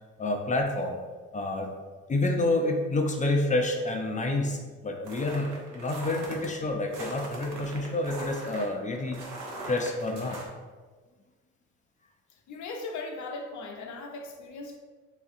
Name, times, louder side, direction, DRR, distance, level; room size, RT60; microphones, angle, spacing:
voice 1, 0.2-1.0 1.3-1.7 2.1-9.2 9.6-10.4, left 2 dB, 25° left, 3 dB, 0.4 m, -28 dB
sound 1, 5.1-6.5 6.9-10.5, right 2 dB, 90° right, 0.7 m, -40 dB
voice 2, 12.3-14.8, left 3 dB, 70° left, 3 dB, 0.6 m, -38 dB
3.3 x 2.4 x 2.6 m, 1.4 s
cardioid pair, 90°, 30 cm